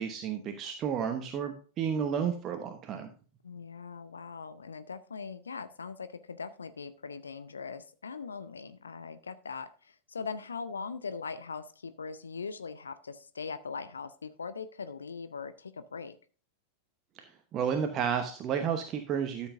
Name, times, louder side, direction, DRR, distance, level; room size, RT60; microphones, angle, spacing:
voice 1, 0.0-3.1 17.2-19.5, right 7 dB, 30° right, 6 dB, 1.0 m, -32 dB
voice 2, 3.4-16.1, left 5 dB, 75° left, 12 dB, 0.6 m, -41 dB
13.0 x 7.3 x 2.6 m, 0.38 s
figure-of-eight pair, 90°, 0 cm